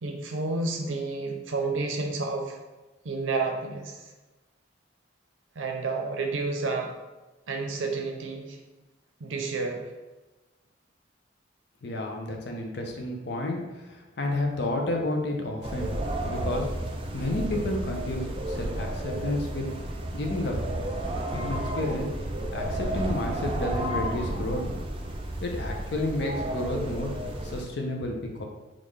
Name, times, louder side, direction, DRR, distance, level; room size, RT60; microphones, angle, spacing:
voice 1, 0.0-2.6 3.0-4.1 5.6-6.9 7.5-8.6 9.2-9.9, right 3 dB, 90° right, 3 dB, 0.6 m, -30 dB
voice 2, 11.8-15.9 16.2-16.7 17.1-19.7 20.1-20.5 21.3-22.1 22.5-24.7 25.4-27.1 27.4-28.4, left 1 dB, 60° left, 2 dB, 0.5 m, -31 dB
sound 1, 15.6-27.6, right 1 dB, 30° right, 0.3 m, -32 dB
3.6 x 2.5 x 3.2 m, 1.1 s
head